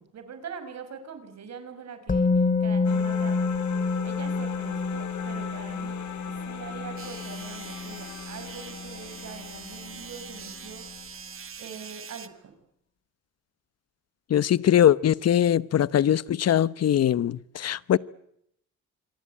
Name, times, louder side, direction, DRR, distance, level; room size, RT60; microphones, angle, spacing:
voice 1, 0.0-3.5 4.0-6.0 6.3-10.8 11.6-12.5, right 6 dB, 60° right, 5.6 m, -43 dB
Musical instrument, 2.1-10.0 10.3-10.4, left 4 dB, 25° left, 2.6 m, -29 dB
sound 1, 2.8-11.4, left 8 dB, 70° left, 4.7 m, -42 dB
sound 2, 7.0-12.3, right 7 dB, 45° right, 2.2 m, -43 dB
voice 2, 14.3-18.0, left 10 dB, 55° left, 1.0 m, -21 dB
27.0 x 23.5 x 8.6 m
cardioid pair, 90°, 30 cm